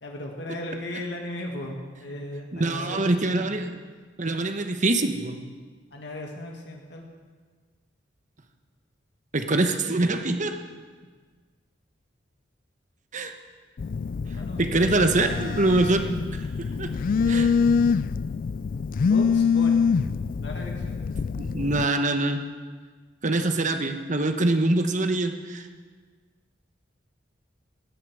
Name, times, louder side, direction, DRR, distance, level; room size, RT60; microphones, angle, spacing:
voice 1, 0.0-3.5 5.9-7.1 14.3-15.3 16.7-17.0 19.0-19.9 20.4-21.0, left 1 dB, 70° left, 1 dB, 1.9 m, -37 dB
voice 2, 2.5-3.7 4.2-5.4 9.3-10.6 13.1-13.3 14.6-16.1 16.3-16.9 17.3-17.5 21.4-22.4 23.2-25.7, right 2 dB, 45° right, 7 dB, 1.1 m, -24 dB
Telephone, 13.8-21.8, left 5 dB, 50° left, 0.3 m, -25 dB
17.0 x 10.0 x 6.3 m, 1.5 s
head